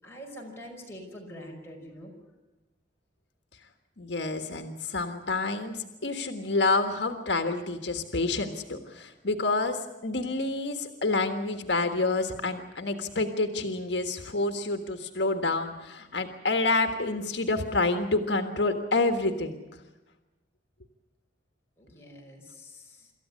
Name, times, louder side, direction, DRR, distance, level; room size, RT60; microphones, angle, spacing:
voice 1, 0.0-2.1 21.8-23.1, equal, 15° left, -2 dB, 5.3 m, -45 dB
voice 2, 4.0-19.5, left 3 dB, 75° left, 6 dB, 1.6 m, -28 dB
26.5 x 14.0 x 9.6 m, 1.1 s
head